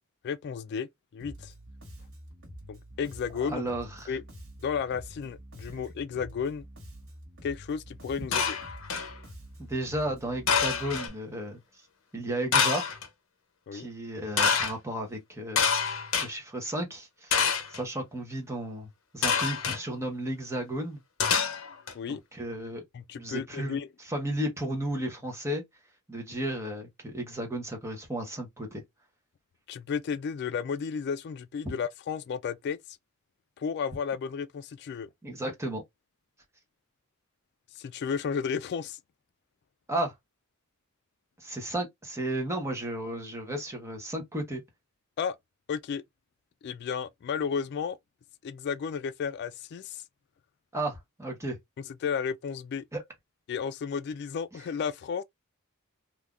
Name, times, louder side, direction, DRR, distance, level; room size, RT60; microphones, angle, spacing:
voice 1, 0.2-1.5 2.7-3.6 4.1-4.2 4.6-6.6 7.4-8.6 13.7-13.9 21.9-22.2 22.9-23.9 29.7-32.8 33.6-35.1 37.8-39.0 45.2-45.4 45.7-46.0 46.6-48.0 48.4-50.0 52.0-52.8 53.5-55.2, left 6 dB, 50° left, 0.3 m, -33 dB
Bass guitar, 1.2-11.1, equal, 65° right, 1.6 m, -47 dB
voice 2, 3.4-4.1 5.7-5.8 9.6-11.6 12.1-12.9 13.7-15.6 16.2-18.9 19.1-21.0 22.1-22.8 23.1-23.8 24.0-25.6 26.1-28.8 35.2-35.8 39.9-40.1 41.4-44.6 50.7-51.6 52.9-53.0, right 1 dB, 15° right, 1.0 m, -33 dB
sound 1, 8.3-9.1 10.5-11.1 12.5-13.1 14.4-14.7 15.6-16.3 17.3-17.8 19.2-19.8 21.2-21.9, left 6 dB, 70° left, 0.8 m, -26 dB
3.6 x 2.7 x 2.4 m
head